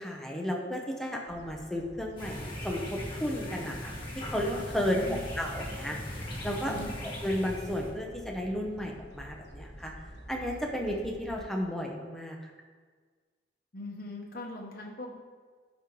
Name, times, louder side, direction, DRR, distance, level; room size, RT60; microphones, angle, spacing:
voice 1, 0.0-5.0 5.4-6.7 7.2-9.9 10.3-12.5, equal, ahead, 0 dB, 0.9 m, -33 dB
sound 1, 1.3-11.4, equal, 80° left, 1.1 m, -49 dB
sound 2, 2.2-7.9, left 1 dB, 25° left, 1.6 m, -39 dB
voice 2, 4.8-5.2 6.7-6.9 13.7-15.2, left 1 dB, 55° left, -1 dB, 0.9 m, -40 dB
11.5 x 5.2 x 3.2 m, 1.5 s
head